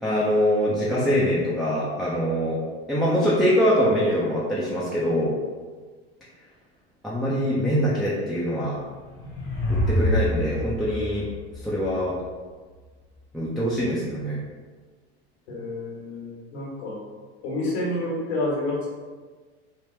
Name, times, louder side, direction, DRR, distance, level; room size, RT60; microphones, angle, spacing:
voice 1, 0.0-2.6 2.9-5.3 7.0-8.8 9.7-11.3 11.6-12.1 13.3-14.4, equal, ahead, -9 dB, 0.5 m, -23 dB
sound 1, 8.9-12.3, equal, 40° left, 0.8 m, -27 dB
voice 2, 15.5-17.0 17.4-18.9, left 1 dB, 75° left, -4 dB, 1.3 m, -29 dB
3.3 x 2.1 x 3.1 m, 1.4 s
supercardioid pair, 105°, 32 cm